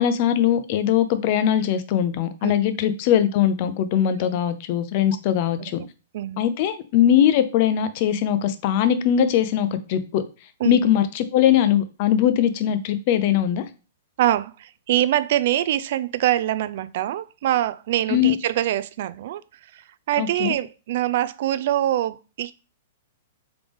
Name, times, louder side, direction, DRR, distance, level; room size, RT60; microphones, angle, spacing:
voice 1, 0.0-5.8 6.4-10.2 10.6-13.6 18.1-18.4 20.2-20.5, left 10 dB, 40° left, 0.5 m, -21 dB
voice 2, 14.2-19.4 19.7-22.5, right 13 dB, 55° right, 0.3 m, -24 dB
3.8 x 3.5 x 3.4 m
hypercardioid pair, 155°, 0 cm